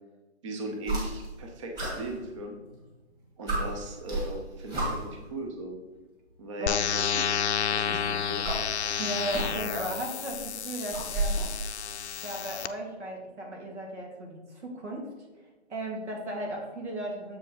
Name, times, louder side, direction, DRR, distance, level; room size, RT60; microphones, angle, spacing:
voice 1, 0.4-2.5 3.4-5.8 6.4-7.3 7.7-8.5, right 1 dB, 30° right, 2 dB, 0.6 m, -38 dB
sound 1, 0.8-1.4 1.7-2.8 3.1-3.2 3.5-5.2 6.3-6.4 7.7-9.8 10.1-11.6, right 1 dB, 10° right, 1.8 m, -33 dB
sound 2, 6.7-12.7, left 8 dB, 70° left, 0.6 m, -31 dB
voice 2, 9.0-11.5 12.2-15.1 15.7-17.4, right 1 dB, 80° right, 0 dB, 2.5 m, -36 dB
7.2 x 5.1 x 4.0 m, 1.2 s
hypercardioid pair, 155°, 34 cm